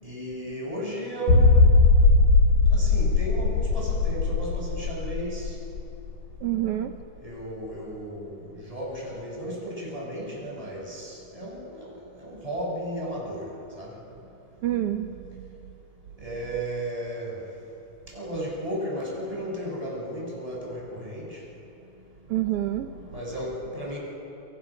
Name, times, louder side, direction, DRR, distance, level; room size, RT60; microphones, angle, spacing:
voice 1, 0.0-1.7 2.7-5.6 7.2-13.5 13.7-13.9 16.2-17.4 18.1-21.4 22.9-24.0, right 1 dB, 10° right, -3 dB, 7.6 m, -34 dB
sound 1, 1.3-6.7 7.0-7.1 7.6-7.7, left 3 dB, 70° left, 6.3 m, -20 dB
voice 2, 6.4-7.0 14.6-15.5 22.3-22.9, right 13 dB, 70° right, 6 dB, 1.4 m, -27 dB
29.5 x 27.0 x 6.4 m, 2.7 s
omnidirectional pair, 3.6 m